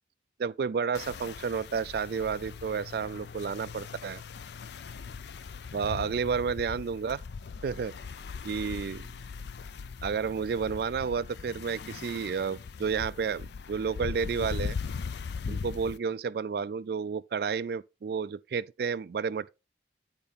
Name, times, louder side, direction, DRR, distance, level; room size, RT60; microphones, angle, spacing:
voice 1, 0.4-4.2 5.7-7.2 7.6-7.9 8.4-9.1 10.0-14.8 15.5-19.5, right 6 dB, 55° right, 0.3 m, -31 dB
sound 1, 0.9-16.0, left 5 dB, 65° left, 0.4 m, -40 dB
8.8 x 5.2 x 4.2 m
head